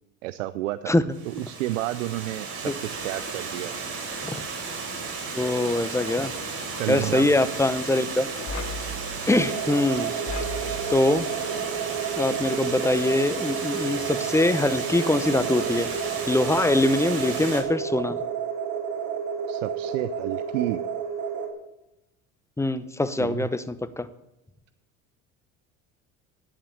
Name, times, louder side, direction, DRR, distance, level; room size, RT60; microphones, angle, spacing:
voice 1, 0.2-0.9 1.2-3.7 6.8-7.3 19.5-20.8 23.2-23.5, right 15 dB, 85° right, 15 dB, 0.5 m, -30 dB
Water, 1.1-17.6, right 4 dB, 40° right, 3.8 m, -34 dB
Wind, 3.8-16.2 16.5-16.7, left 2 dB, 45° left, 1.3 m, -42 dB
voice 2, 5.3-6.3 6.9-8.3 9.3-10.1 10.9-11.3 12.2-15.9 16.3-18.2 22.6-24.1, left 2 dB, 5° left, 14 dB, 0.8 m, -23 dB
sound 1, 9.3-21.5, right 7 dB, 55° right, 2.9 m, -31 dB
10.0 x 8.9 x 7.0 m, 0.93 s
hypercardioid pair, 80°, 37 cm